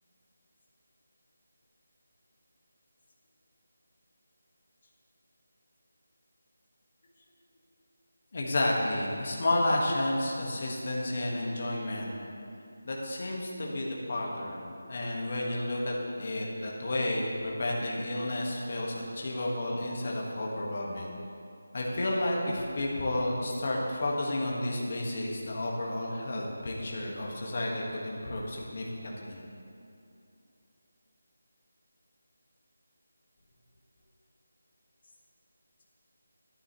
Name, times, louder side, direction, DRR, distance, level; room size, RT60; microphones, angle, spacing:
voice 1, 8.3-12.1 12.8-14.6 14.9-21.1 21.7-29.4, left 1 dB, 40° left, -2 dB, 1.6 m, -31 dB
13.0 x 10.0 x 3.2 m, 2.6 s
figure-of-eight pair, 175°, 0 cm